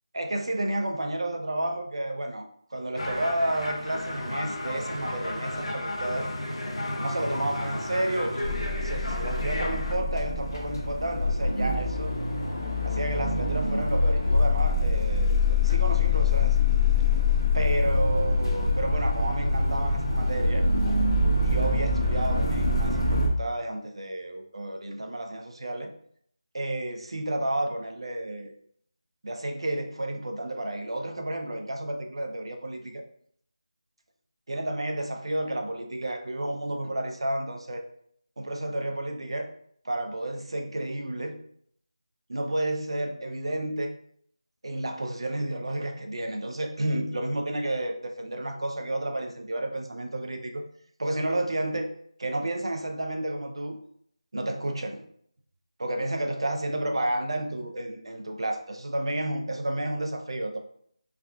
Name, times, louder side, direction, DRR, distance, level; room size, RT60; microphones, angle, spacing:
voice 1, 0.1-2.5 2.7-6.3 7.0-12.2 12.8-15.4 15.6-16.6 17.5-20.7 21.4-25.9 26.5-28.5 29.2-33.0 34.5-37.8 38.4-39.5 39.8-41.4 42.3-44.0 44.6-50.6 51.0-51.9 52.2-53.8 54.3-55.0 55.8-60.6, right 1 dB, 60° right, 4 dB, 0.5 m, -31 dB
sound 1, 3.0-10.0, left 1 dB, 90° left, 0.8 m, -33 dB
sound 2, 8.4-23.3, left 3 dB, 40° left, 0.7 m, -25 dB
3.5 x 2.2 x 3.4 m, 0.66 s
figure-of-eight pair, 175°, 3 cm